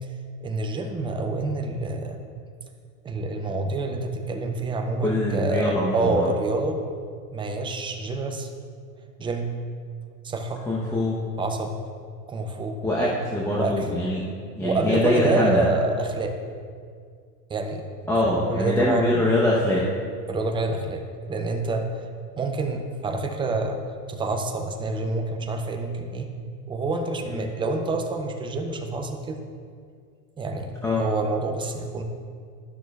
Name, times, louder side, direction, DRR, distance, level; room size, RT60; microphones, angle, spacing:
voice 1, 0.4-2.2 3.0-6.8 7.3-8.5 9.2-9.5 10.2-10.7 11.4-11.7 12.3-12.8 13.5-13.9 14.6-16.3 17.5-17.8 18.3-19.3 20.3-21.0 21.3-21.9 22.4-23.8 24.1-26.3 26.7-29.4 30.4-32.0, right 3 dB, 10° right, 4 dB, 0.5 m, -27 dB
voice 2, 5.0-6.3 10.7-11.2 12.8-14.3 14.5-15.6 18.1-19.8 27.3-27.5 30.8-31.0, left 1 dB, 5° left, -6 dB, 0.8 m, -23 dB
12.5 x 6.1 x 2.3 m, 2.1 s
hypercardioid pair, 105°, 49 cm